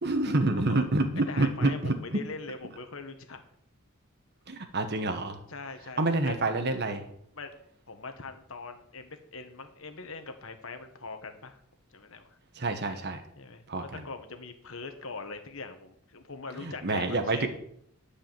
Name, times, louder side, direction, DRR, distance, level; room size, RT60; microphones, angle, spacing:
voice 1, 0.0-2.2 4.5-5.4 6.0-7.1 12.5-13.2 13.7-14.0 16.6-17.5, right 2 dB, 50° right, 7 dB, 1.4 m, -28 dB
voice 2, 1.3-3.4 5.5-6.3 7.4-7.5 7.9-11.6 11.9-12.4 13.4-17.5, left 4 dB, 60° left, 7 dB, 1.4 m, -42 dB
11.5 x 5.0 x 7.6 m, 0.69 s
head